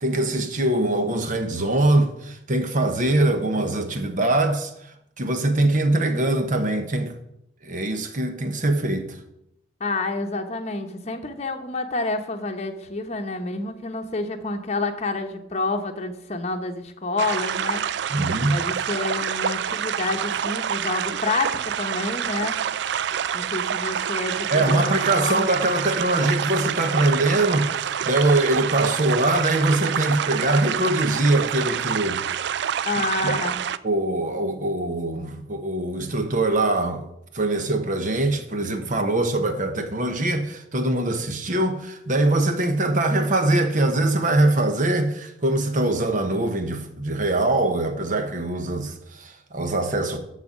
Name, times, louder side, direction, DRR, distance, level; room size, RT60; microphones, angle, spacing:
voice 1, 0.0-4.7 5.2-7.1 7.6-9.2 18.1-18.6 24.5-32.2 33.2-33.5 33.8-37.0 37.3-50.2, right 2 dB, 45° right, 1.1 m, -23 dB
voice 2, 9.8-17.9 18.5-22.6 23.3-25.5 32.8-33.6, left 3 dB, 35° left, 1.0 m, -28 dB
sound 1, 17.2-33.8, right 8 dB, 60° right, 0.4 m, -27 dB
12.5 x 4.2 x 7.3 m
head